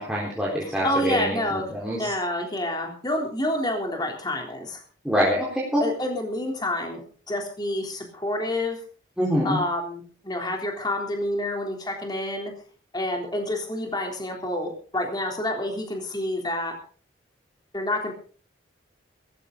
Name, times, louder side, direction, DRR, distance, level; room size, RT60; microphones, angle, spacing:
voice 1, 0.0-2.1 5.0-5.8 9.2-9.6, equal, 5° right, -5 dB, 4.0 m, -25 dB
voice 2, 0.6-1.7 1.9-4.8 5.8-8.8 9.4-12.5 12.9-16.8 17.7-18.1, left 1 dB, 20° left, 2 dB, 3.5 m, -28 dB
18.0 x 14.5 x 4.0 m, 0.41 s
head